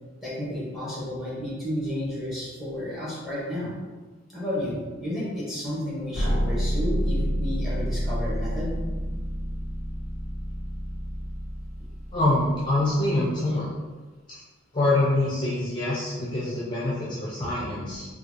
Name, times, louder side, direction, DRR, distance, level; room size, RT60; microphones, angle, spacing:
voice 1, 0.2-3.7 4.3-8.8, left 1 dB, ahead, -7 dB, 1.0 m, -32 dB
sound 1, 6.1-13.0, equal, 40° right, 1.3 m, -29 dB
voice 2, 12.1-13.7 14.7-18.1, left 2 dB, 25° left, -7 dB, 0.6 m, -25 dB
3.6 x 2.3 x 3.0 m, 1.3 s
head